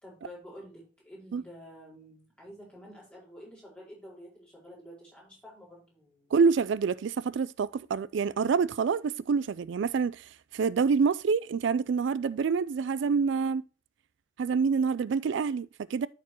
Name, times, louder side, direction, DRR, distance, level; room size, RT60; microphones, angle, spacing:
voice 1, 0.0-6.3, equal, 5° left, 4.6 m, -49 dB
voice 2, 6.3-13.6 14.4-16.1, right 5 dB, 70° right, 0.3 m, -27 dB
13.0 x 4.5 x 2.9 m
head